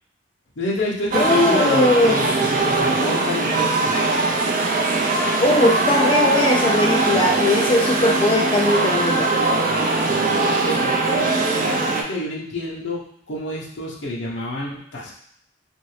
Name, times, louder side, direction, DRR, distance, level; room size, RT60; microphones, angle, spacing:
voice 1, 0.6-4.0 7.1-7.5 10.0-10.3 10.6-15.1, left 1 dB, 85° left, -3 dB, 0.8 m, -29 dB
sound 1, 1.1-12.0, right 3 dB, 45° right, 0.4 m, -21 dB
voice 2, 1.2-2.2 5.4-9.3, left 1 dB, 30° left, -1 dB, 0.3 m, -19 dB
2.8 x 2.6 x 3.1 m, 0.70 s
head